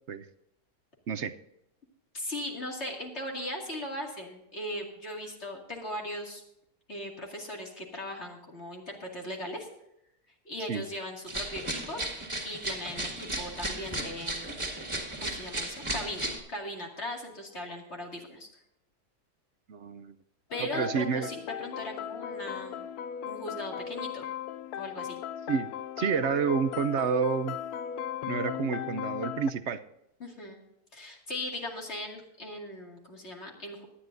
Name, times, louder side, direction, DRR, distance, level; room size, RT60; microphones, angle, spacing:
voice 1, 2.1-6.4 6.9-9.7 10.4-12.0 12.4-14.5 15.2-18.5 20.5-22.8 23.3-24.2 24.8-25.2 30.2-30.6 30.9-33.8, left 1 dB, 45° left, 0 dB, 2.5 m, -38 dB
sound 1, 11.3-16.4, right 1 dB, 20° right, 2.1 m, -35 dB
voice 2, 19.7-20.1 20.6-21.3 25.5-25.7 26.0-27.6 28.3-29.8, right 6 dB, 55° right, 12 dB, 0.9 m, -29 dB
sound 2, 20.5-29.5, left 9 dB, 75° left, 1.1 m, -37 dB
18.5 x 11.5 x 2.6 m, 0.81 s
omnidirectional pair, 1.6 m